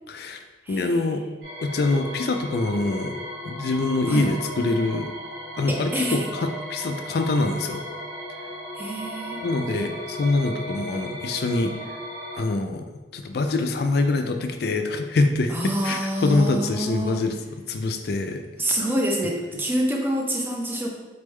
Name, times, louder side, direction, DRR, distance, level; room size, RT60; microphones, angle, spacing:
voice 1, 0.1-0.4 0.7-1.2 1.6-3.2 3.5-5.1 5.6-7.8 9.4-11.7 12.3-18.4, left 2 dB, 60° left, 6 dB, 0.4 m, -25 dB
voice 2, 0.6-1.0 4.1-4.3 5.7-6.3 8.8-9.4 15.5-17.2 18.6-20.9, right 1 dB, 10° right, 0 dB, 0.6 m, -27 dB
sound 1, 1.4-12.4, equal, 60° right, 1.3 m, -36 dB
4.2 x 3.5 x 3.2 m, 1.2 s
head